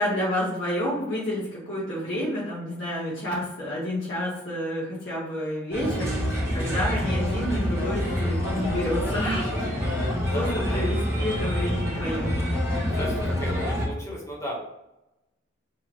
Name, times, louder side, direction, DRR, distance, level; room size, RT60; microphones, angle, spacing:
voice 1, 0.0-9.4 9.7-10.0 10.3-12.5, equal, 75° left, -8 dB, 1.5 m, -29 dB
Bird, 5.7-13.9, equal, 15° right, 1.1 m, -27 dB
voice 2, 10.1-11.3 11.9-12.0 12.9-14.6, equal, 15° left, -4 dB, 1.2 m, -36 dB
4.7 x 2.4 x 4.5 m, 0.89 s
head